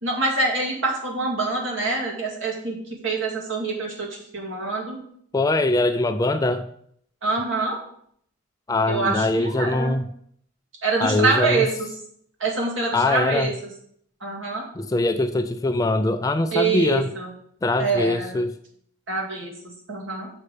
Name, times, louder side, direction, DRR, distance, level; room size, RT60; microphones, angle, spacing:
voice 1, 0.0-2.8 3.0-5.0 7.2-7.8 8.9-10.0 10.8-11.7 12.4-13.5 14.2-14.7 16.5-17.3 17.8-18.4 19.1-20.3, right 3 dB, 70° right, 2.1 m, -25 dB
voice 2, 5.3-6.7 8.7-10.0 11.0-11.7 12.9-13.5 14.7-17.1 17.6-18.5, left 2 dB, 15° left, 0.3 m, -22 dB
6.4 x 5.5 x 5.0 m
head